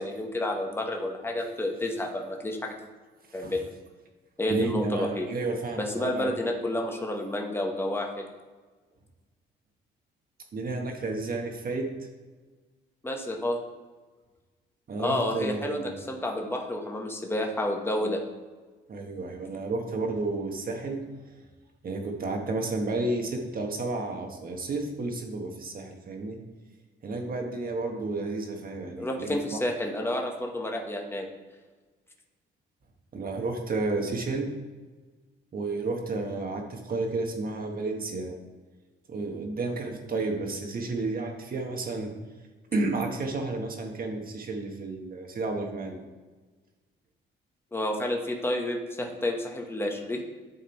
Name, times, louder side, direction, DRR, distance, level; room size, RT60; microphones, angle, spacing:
voice 1, 0.0-2.7 3.3-3.6 4.4-5.3 5.7-8.3 13.0-13.6 15.0-18.2 29.0-31.3 47.7-50.2, left 1 dB, 10° left, 1 dB, 1.3 m, -30 dB
voice 2, 4.5-6.5 10.5-11.9 14.9-15.9 18.9-21.0 21.8-26.4 27.0-29.6 33.1-34.5 35.5-38.4 39.1-42.1 42.7-46.0, right 3 dB, 45° right, 3 dB, 1.6 m, -31 dB
11.0 x 3.6 x 4.5 m, 1.3 s
cardioid pair, 90°, 20 cm